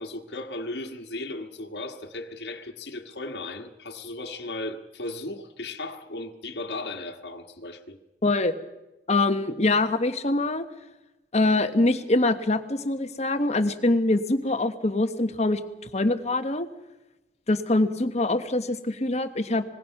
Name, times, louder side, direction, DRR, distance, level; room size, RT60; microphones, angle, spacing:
voice 1, 0.0-8.0, left 2 dB, 65° left, 1.6 m, -36 dB
voice 2, 8.2-8.5 9.1-10.6 11.3-15.6 15.9-16.7 17.5-19.6, left 2 dB, 40° left, 1.3 m, -24 dB
25.0 x 20.5 x 5.9 m
head